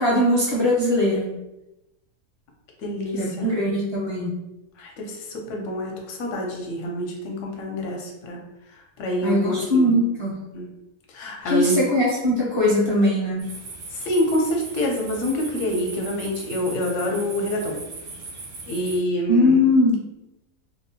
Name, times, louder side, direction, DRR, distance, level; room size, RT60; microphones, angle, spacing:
voice 1, 0.0-1.3 3.1-4.3 9.2-10.4 11.4-13.5 19.3-20.0, left 1 dB, 40° left, -7 dB, 0.3 m, -20 dB
voice 2, 2.8-3.5 4.8-8.4 8.7-9.9 10.5-10.7 11.1-11.8 13.9-17.8 18.7-19.7, left 1 dB, 70° left, 1 dB, 0.9 m, -26 dB
sound 1, 13.4-19.0, right 3 dB, 65° right, 0.6 m, -38 dB
2.7 x 2.1 x 2.7 m, 0.93 s
omnidirectional pair, 1.4 m